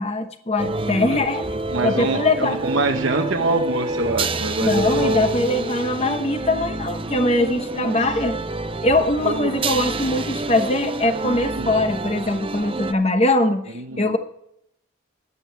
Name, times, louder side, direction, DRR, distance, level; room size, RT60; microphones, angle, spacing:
voice 1, 0.0-1.4 1.8-2.6 4.6-8.4 8.8-14.2, left 2 dB, 30° left, 7 dB, 1.0 m, -22 dB
sound 1, 0.6-12.9, right 2 dB, 25° right, 0.6 m, -27 dB
voice 2, 1.7-5.3 7.8-8.0 9.2-9.6 11.6-11.7 13.7-14.2, right 3 dB, 70° right, 3 dB, 0.9 m, -25 dB
15.0 x 11.0 x 3.4 m, 0.71 s
head